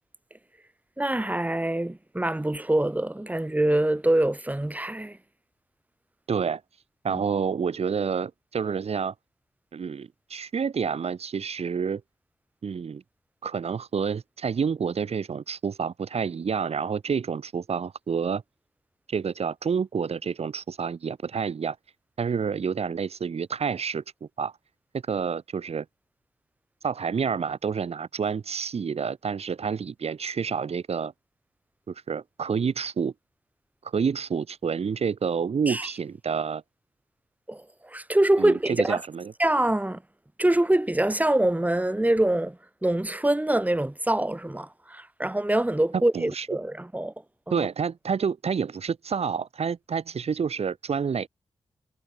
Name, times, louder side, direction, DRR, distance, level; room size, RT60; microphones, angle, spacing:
voice 1, 1.0-5.2 7.1-7.2 35.7-35.9 37.5-39.0 39.4-40.0 40.4-47.1 47.5-47.7, right 1 dB, 15° right, 3.2 m, -25 dB
voice 2, 6.3-6.6 7.0-9.1 9.7-12.0 12.6-13.0 13.4-18.4 19.1-21.8 22.2-24.5 25.1-25.8 26.8-31.1 31.9-33.1 33.8-36.6 38.4-39.3 45.9-46.5 47.5-51.3, right 6 dB, 70° right, 1.2 m, -28 dB
wide cardioid pair, 90°, 11 cm